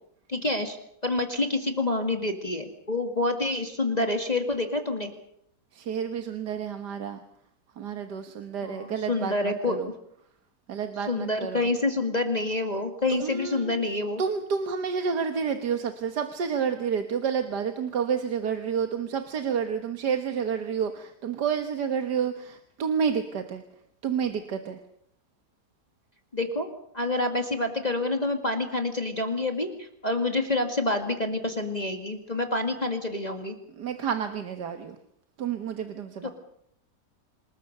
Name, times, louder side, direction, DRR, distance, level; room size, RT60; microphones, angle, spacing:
voice 1, 0.3-0.8 1.0-5.1 8.6-9.8 11.1-14.2 26.3-26.7 26.9-33.6 36.2-36.3, left 2 dB, 25° left, 5 dB, 2.1 m, -27 dB
voice 2, 5.7-7.2 7.8-9.9 10.7-11.7 13.1-13.8 14.2-23.6 24.0-24.8 33.8-35.0 35.4-36.3, right 7 dB, 70° right, 7 dB, 1.9 m, -29 dB
27.5 x 19.5 x 6.7 m, 0.71 s
omnidirectional pair, 1.8 m